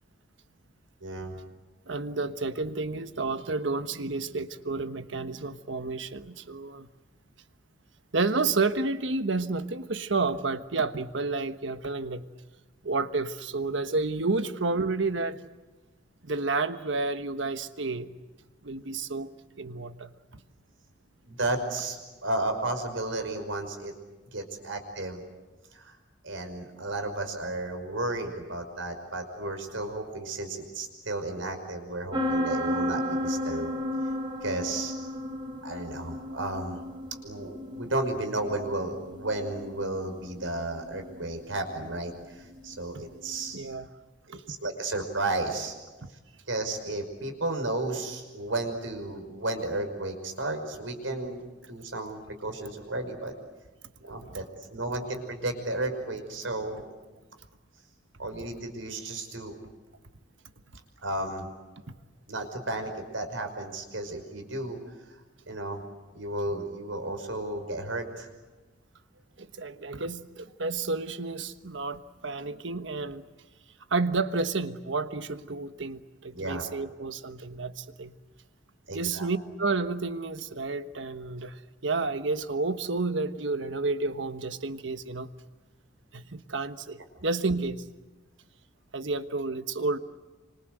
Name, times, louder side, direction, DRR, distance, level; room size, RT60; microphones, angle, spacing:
voice 1, 1.0-1.4 21.3-23.9 24.3-25.2 25.7-25.9 26.2-33.7 34.4-34.9 35.6-36.8 37.2-43.6 44.3-45.8 46.5-53.3 54.0-54.4 54.7-56.9 58.2-59.6 61.0-61.5 62.3-64.8 65.5-65.8 66.1-68.3 76.3-76.6 78.9-79.3, right 2 dB, 85° right, 6 dB, 5.6 m, -33 dB
voice 2, 1.9-6.9 8.1-12.2 12.8-15.4 16.2-18.1 18.6-19.3 19.6-20.1 43.5-43.9 44.3-44.4 54.3-54.4 69.4-73.2 73.9-78.1 78.9-85.3 86.1-87.8 88.9-90.0, right 3 dB, 70° right, 10 dB, 1.3 m, -30 dB
sound 1, 32.1-43.6, left 1 dB, 25° right, 4.1 m, -34 dB
28.5 x 26.0 x 8.0 m, 1.2 s
head